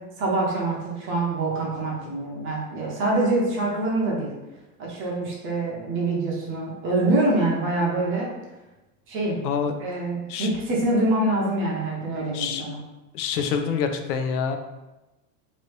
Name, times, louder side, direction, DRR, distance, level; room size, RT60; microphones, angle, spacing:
voice 1, 0.2-4.3 4.8-8.3 9.1-9.4 9.8-12.8, right 2 dB, 25° right, -3 dB, 0.7 m, -25 dB
voice 2, 9.4-9.8 10.3-10.5 12.3-12.6 13.1-14.6, left 6 dB, 70° left, 6 dB, 0.6 m, -26 dB
3.0 x 2.6 x 3.1 m, 1.0 s
supercardioid pair, 145°, 47 cm